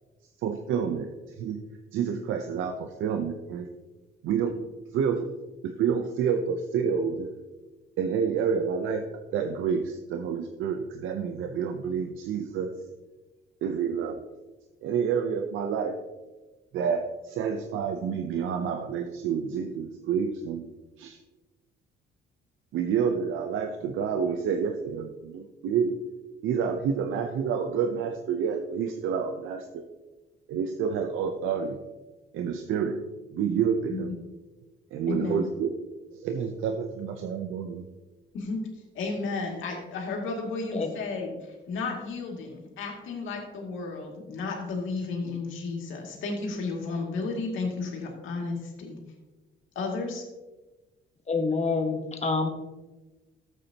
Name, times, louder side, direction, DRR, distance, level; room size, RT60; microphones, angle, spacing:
voice 1, 0.4-1.6 1.9-3.7 4.2-4.6 4.9-5.3 5.6-7.3 8.0-12.7 13.6-14.2 14.8-16.0 16.7-20.6 21.0-21.2 22.7-26.0 26.4-29.8 30.5-31.8 32.3-33.0 33.3-34.1 34.9-35.7 36.1-37.9, right 7 dB, 85° right, 6 dB, 0.7 m, -29 dB
voice 2, 35.1-35.4 38.3-38.6 38.9-49.0 49.8-50.2, left 3 dB, 80° left, 0 dB, 2.5 m, -33 dB
voice 3, 51.3-52.5, left 4 dB, 35° left, 5 dB, 1.4 m, -27 dB
12.5 x 8.3 x 2.9 m, 1.2 s
cardioid pair, 90°, 20 cm